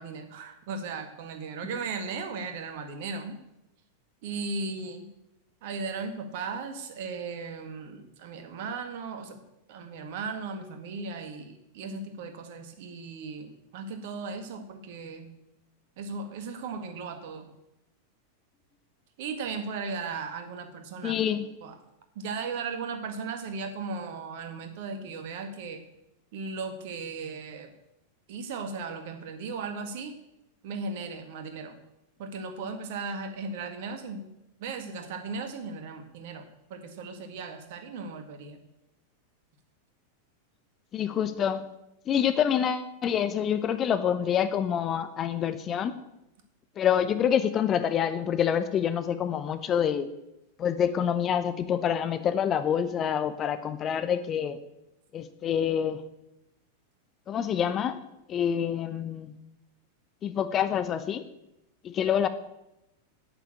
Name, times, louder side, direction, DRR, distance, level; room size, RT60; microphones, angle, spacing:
voice 1, 0.0-3.4 4.2-5.1 5.6-9.4 9.7-15.3 16.0-17.5 19.2-21.2 21.6-21.7 22.2-25.8 26.3-27.7 28.3-30.1 30.6-31.8 32.2-34.3 34.6-36.5 36.7-38.6, right 4 dB, 50° right, 6 dB, 2.0 m, -36 dB
voice 2, 21.0-21.5 40.9-41.6 42.1-46.0 46.8-50.1 50.6-54.6 55.1-56.0 57.3-58.0 58.3-59.3 60.2-61.2 61.8-62.3, left 8 dB, 30° left, 11 dB, 0.8 m, -27 dB
8.8 x 8.8 x 8.6 m, 0.89 s
figure-of-eight pair, 90°, 0 cm